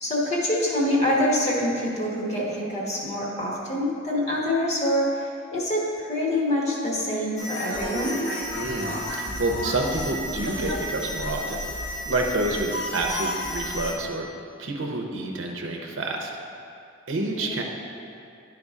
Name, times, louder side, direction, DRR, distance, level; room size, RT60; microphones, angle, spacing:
voice 1, 0.0-8.2 17.3-17.6, left 1 dB, 35° left, -4 dB, 1.2 m, -25 dB
sound 1, 7.4-13.9, equal, 60° left, 1.3 m, -31 dB
voice 2, 8.6-11.8 12.1-14.3 14.6-16.3 17.1-17.6, right 2 dB, 75° right, 1 dB, 0.7 m, -28 dB
11.0 x 4.8 x 3.6 m, 2.5 s
head